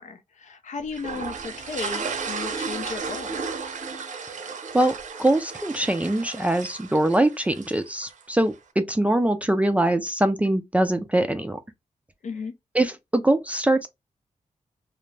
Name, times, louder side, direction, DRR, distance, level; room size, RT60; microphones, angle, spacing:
voice 1, 0.0-3.6 12.2-12.5, left 5 dB, 75° left, 0.6 m, -35 dB
sound 1, 0.9-8.2, right 5 dB, 85° right, 0.6 m, -34 dB
voice 2, 4.7-11.6 12.8-13.9, right 1 dB, 10° right, 0.3 m, -23 dB
2.5 x 2.0 x 3.2 m
wide cardioid pair, 105°, 13 cm